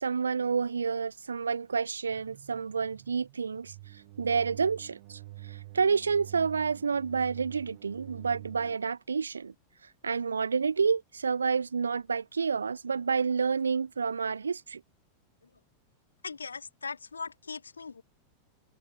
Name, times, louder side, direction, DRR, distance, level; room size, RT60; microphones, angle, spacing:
voice 1, 0.0-3.7 4.2-5.2 5.5-9.5 10.0-14.8, right 5 dB, 75° right, 0.7 m, -29 dB
sound 1, 2.1-8.8, right 19 dB, 50° right, 1.1 m, -47 dB
voice 2, 16.2-18.0, left 5 dB, 75° left, 2.1 m, -39 dB
open air
figure-of-eight pair, 90°, 0 cm